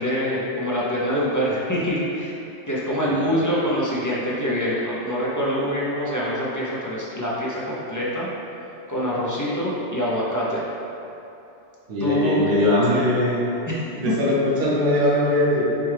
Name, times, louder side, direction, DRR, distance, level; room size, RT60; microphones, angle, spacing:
voice 1, 0.0-2.4 2.7-8.3 8.9-10.6 12.0-12.5 12.9-13.0 13.7-13.8, equal, 25° left, -7 dB, 0.4 m, -25 dB
voice 2, 11.9-13.4 13.9-15.6, left 1 dB, 45° right, -7 dB, 1.0 m, -21 dB
6.8 x 2.3 x 3.3 m, 2.9 s
omnidirectional pair, 1.2 m